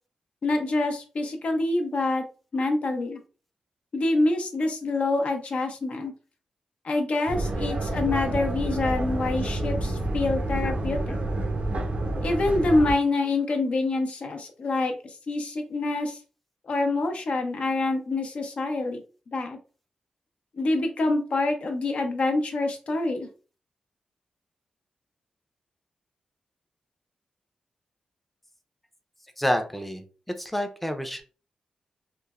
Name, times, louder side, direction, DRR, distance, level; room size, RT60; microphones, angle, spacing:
voice 1, 0.4-2.2 2.5-3.2 3.9-6.1 6.8-11.2 12.2-14.9 15.3-16.2 16.7-19.0 19.3-19.6 20.6-23.3, left 2 dB, 60° left, 5 dB, 0.6 m, -26 dB
sound 1, 7.3-12.9, right 2 dB, 60° right, 0.5 m, -28 dB
voice 2, 29.4-30.0 30.4-31.2, equal, 5° left, 6 dB, 0.5 m, -28 dB
3.0 x 2.1 x 2.4 m, 0.36 s
cardioid pair, 75°, 2 cm